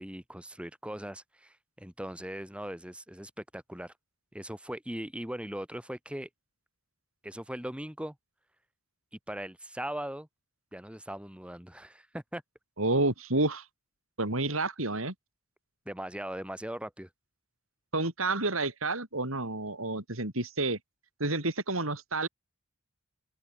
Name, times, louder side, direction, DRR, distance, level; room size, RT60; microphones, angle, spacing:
voice 1, 0.0-3.9 4.3-6.3 7.2-8.2 9.3-10.3 10.7-12.4 15.8-17.1, right 1 dB, 5° right, 2.9 m, -39 dB
voice 2, 12.8-13.6 14.2-15.1 17.9-20.8 21.2-22.3, right 2 dB, 90° right, 5.9 m, -29 dB
open air
head